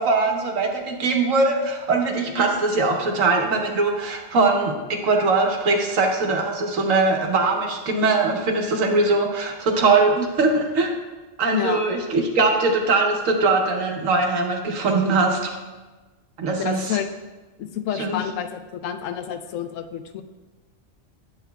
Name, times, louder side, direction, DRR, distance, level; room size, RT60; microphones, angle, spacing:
voice 1, 0.0-11.0 11.4-15.5 16.4-17.0 17.9-18.2, right 3 dB, 90° right, 2 dB, 1.3 m, -21 dB
voice 2, 11.5-11.8 16.6-17.1 17.6-20.2, left 9 dB, 85° left, 8 dB, 0.9 m, -29 dB
8.5 x 7.9 x 2.2 m, 1.2 s
omnidirectional pair, 1.3 m